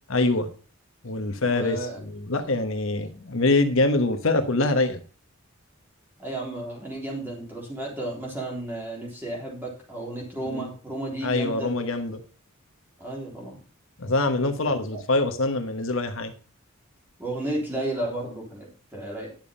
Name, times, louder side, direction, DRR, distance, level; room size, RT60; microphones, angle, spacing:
voice 1, 0.1-0.5 1.0-5.0 10.5-10.7 11.2-12.2 14.0-16.3, left 2 dB, 70° left, 8 dB, 1.1 m, -24 dB
voice 2, 1.4-2.0 6.2-11.7 13.0-13.6 14.9-15.0 17.2-19.3, right 1 dB, 10° right, -2 dB, 3.6 m, -33 dB
10.5 x 7.2 x 5.3 m, 0.38 s
head